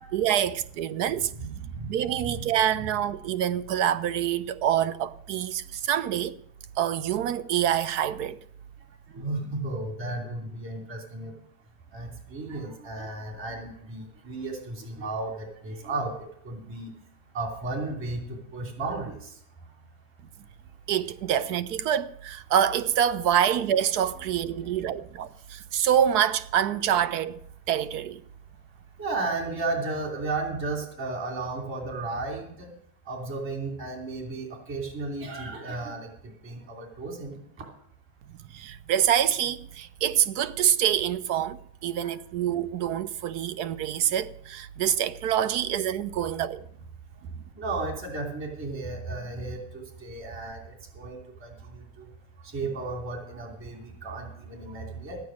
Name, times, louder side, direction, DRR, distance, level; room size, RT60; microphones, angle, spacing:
voice 1, 0.1-1.5 1.8-6.4 6.8-8.4 20.9-27.4 27.7-28.2 38.5-46.6, right 10 dB, 70° right, 0.9 m, -26 dB
voice 2, 9.1-11.3 11.9-16.1 16.4-16.9 17.3-18.3 18.5-19.1 29.0-32.7 33.1-36.1 36.4-37.4 42.0-42.1 45.5-45.6 47.6-49.6 50.0-50.6 50.9-51.5 52.5-55.2, right 3 dB, 35° right, 2.9 m, -33 dB
13.5 x 9.3 x 6.3 m
supercardioid pair, 150°, 37 cm